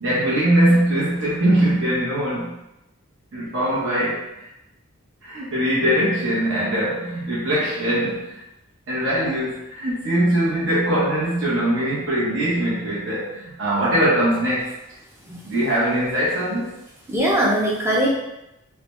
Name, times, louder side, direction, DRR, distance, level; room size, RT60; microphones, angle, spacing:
voice 1, 0.0-2.5 3.3-4.5 5.2-8.4 8.9-14.7 15.4-16.7, right 1 dB, 55° right, -8 dB, 1.1 m, -21 dB
voice 2, 17.1-18.1, right 1 dB, 10° right, -4 dB, 0.6 m, -21 dB
3.9 x 2.3 x 3.1 m, 0.90 s
head